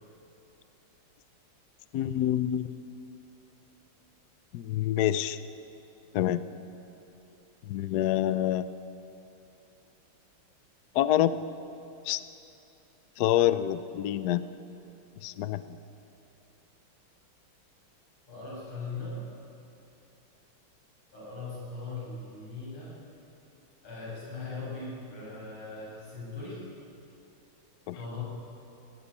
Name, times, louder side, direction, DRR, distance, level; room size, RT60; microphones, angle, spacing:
voice 1, 1.9-2.8 4.5-5.4 6.1-6.4 7.6-8.7 10.9-11.4 12.0-12.2 13.2-14.4 15.2-15.8 27.9-28.0, left 12 dB, 70° left, 13 dB, 1.0 m, -27 dB
voice 2, 18.3-19.2 21.1-22.9 23.8-26.6 27.9-28.2, left 3 dB, 90° left, -6 dB, 7.9 m, -39 dB
17.5 x 15.5 x 9.7 m, 2.8 s
omnidirectional pair, 2.3 m